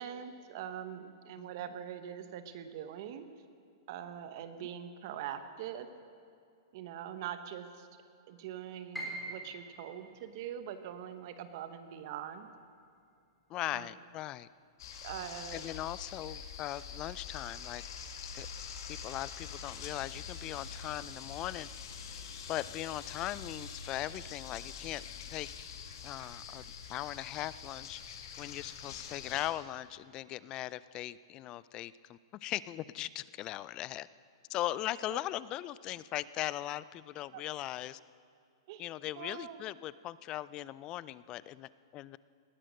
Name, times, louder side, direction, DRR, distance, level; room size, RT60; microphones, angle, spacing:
voice 1, 0.0-3.3 3.9-5.9 6.7-7.9 8.3-12.5 13.7-13.9 15.0-15.6 35.1-35.2 37.3-37.4 38.7-38.8 39.2-39.6, right 9 dB, 50° right, 10 dB, 1.1 m, -43 dB
Piano, 8.9-14.9 15.2-16.4 16.8-16.9 17.6-17.9, right 1 dB, ahead, 4.0 m, -48 dB
voice 2, 13.5-14.5 15.5-18.1 18.3-18.5 18.9-21.7 22.5-25.5 26.0-26.6 26.9-28.0 28.4-34.1 34.5-38.0 38.8-42.2, left 14 dB, 30° left, 18 dB, 0.4 m, -39 dB
sound 1, 14.8-29.5, left 6 dB, 60° left, 1.8 m, -45 dB
19.0 x 11.0 x 6.4 m, 2.4 s
hypercardioid pair, 145°, 3 cm